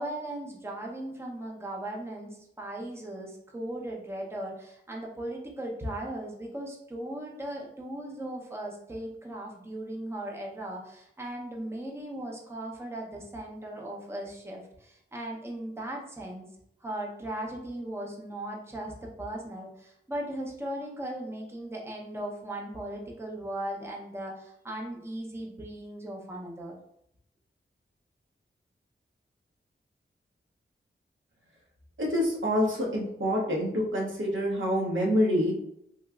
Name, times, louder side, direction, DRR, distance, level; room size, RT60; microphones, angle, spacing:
voice 1, 0.0-16.5 16.8-26.8, right 1 dB, 10° right, -1 dB, 0.7 m, -38 dB
voice 2, 32.0-35.5, equal, 70° right, -2 dB, 1.0 m, -26 dB
3.0 x 3.0 x 2.4 m, 0.76 s
cardioid pair, 50°, 21 cm